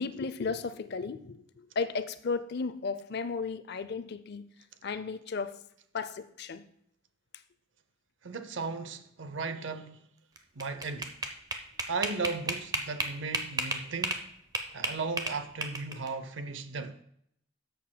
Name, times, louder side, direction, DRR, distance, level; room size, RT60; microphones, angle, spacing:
voice 1, 0.0-4.4 4.8-5.6 5.9-6.6, left 4 dB, 55° left, 0.5 m, -34 dB
voice 2, 8.2-10.0 10.6-11.1 11.9-14.2 14.7-17.0, right 4 dB, 65° right, 0.6 m, -36 dB
sound 1, 10.4-14.2 14.5-16.1, right 2 dB, 20° right, 0.7 m, -32 dB
13.0 x 6.7 x 2.2 m
head